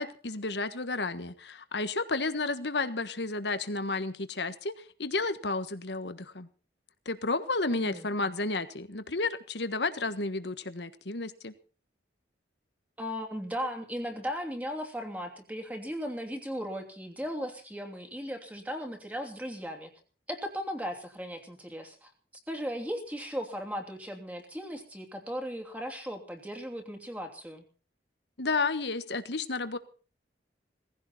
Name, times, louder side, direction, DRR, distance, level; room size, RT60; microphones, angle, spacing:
voice 1, 0.0-6.5 7.0-11.5 28.4-29.8, left 3 dB, 70° left, 12 dB, 1.5 m, -32 dB
voice 2, 7.7-8.1 13.0-19.9 20.3-22.1 22.5-27.6, equal, 10° right, 3 dB, 2.9 m, -37 dB
18.5 x 15.5 x 4.3 m, 0.38 s
head